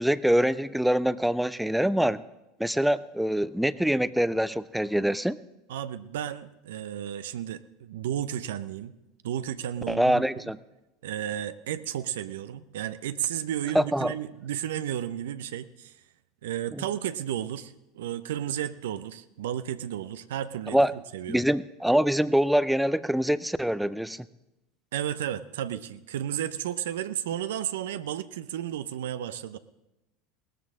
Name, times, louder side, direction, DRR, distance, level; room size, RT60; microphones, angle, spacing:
voice 1, 0.0-2.2 2.6-5.4 9.9-10.6 13.7-14.1 16.7-16.8 20.7-20.9 21.3-24.2, equal, ahead, 16 dB, 0.5 m, -24 dB
voice 2, 5.7-8.9 9.2-10.5 11.0-15.9 16.4-20.8 21.1-21.4 24.9-29.6, right 11 dB, 75° right, 12 dB, 0.6 m, -33 dB
18.5 x 13.5 x 3.7 m, 0.97 s
hypercardioid pair, 80°, 0 cm